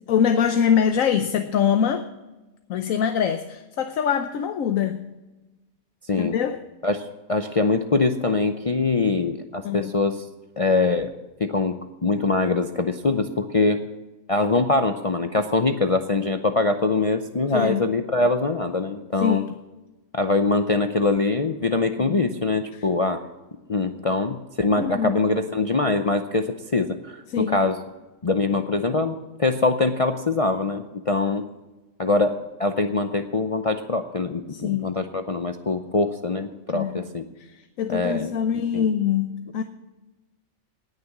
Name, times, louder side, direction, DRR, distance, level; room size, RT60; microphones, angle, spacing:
voice 1, 0.1-2.0 2.7-5.0 6.2-6.6 9.6-9.9 17.5-17.8 19.2-19.4 22.0-22.2 24.8-25.1 27.3-27.6 34.5-34.9 36.7-37.0 37.8-39.6, left 8 dB, 80° left, 7 dB, 1.2 m, -23 dB
voice 2, 6.8-10.2 10.6-11.1 11.4-13.8 14.3-19.5 20.1-23.3 23.7-27.8 28.2-31.5 32.0-37.2 37.9-38.9, left 3 dB, 40° left, 6 dB, 0.5 m, -23 dB
18.5 x 6.7 x 6.0 m, 1.1 s
omnidirectional pair, 1.4 m